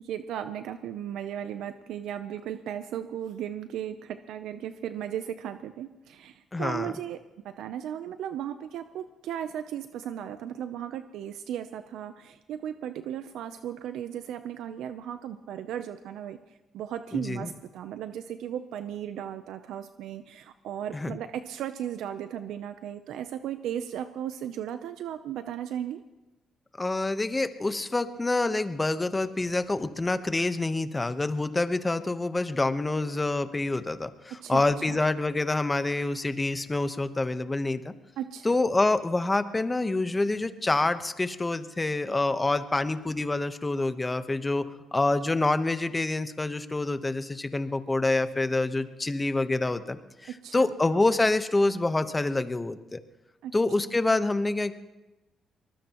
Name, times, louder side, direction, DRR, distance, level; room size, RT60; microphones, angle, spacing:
voice 1, 0.0-7.2 7.4-16.4 16.7-26.0 34.4-34.6 34.9-35.0 38.2-38.6 50.4-50.7 53.4-53.5, right 10 dB, 85° right, 10 dB, 0.6 m, -36 dB
voice 2, 6.5-6.9 17.1-17.5 20.9-21.2 26.8-37.9 38.4-53.0 53.5-54.7, left 2 dB, 20° left, 10 dB, 1.0 m, -27 dB
23.0 x 20.0 x 3.0 m, 1.1 s
cardioid pair, 90°, 0 cm